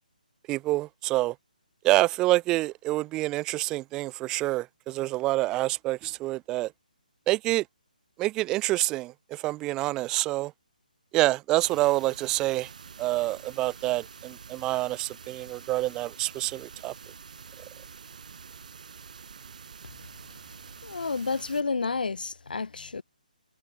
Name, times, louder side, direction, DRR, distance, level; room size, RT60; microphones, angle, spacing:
voice 1, 0.5-1.4 1.8-6.7 7.3-7.6 8.2-10.5 11.1-12.7 13.0-16.9, right 18 dB, 15° right, 0.4 m, -27 dB
sound 1, 11.6-21.6, right 6 dB, 60° right, 2.3 m, -47 dB
voice 2, 20.8-23.0, left 4 dB, 80° left, 0.9 m, -30 dB
hypercardioid pair, 160°, 5 cm